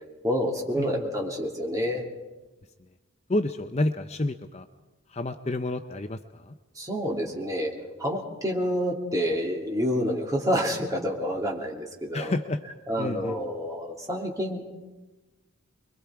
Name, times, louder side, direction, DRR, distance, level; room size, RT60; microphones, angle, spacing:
voice 1, 0.2-2.0 6.8-7.7 8.0-12.3 12.9-14.6, equal, 15° right, -1 dB, 2.9 m, -28 dB
voice 2, 0.8-1.1 3.3-4.7 5.1-6.5 12.1-12.6 13.0-13.4, left 2 dB, 30° left, 7 dB, 0.6 m, -29 dB
26.5 x 22.5 x 4.7 m, 1.2 s
head